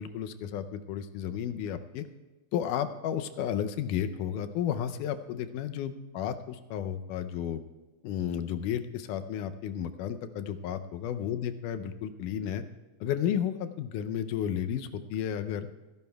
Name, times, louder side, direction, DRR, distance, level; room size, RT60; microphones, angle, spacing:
voice 1, 0.0-2.0 2.5-7.6 8.0-12.6 13.0-15.7, left 9 dB, 80° left, 10 dB, 2.2 m, -32 dB
29.5 x 11.0 x 2.3 m, 1.1 s
omnidirectional pair, 3.7 m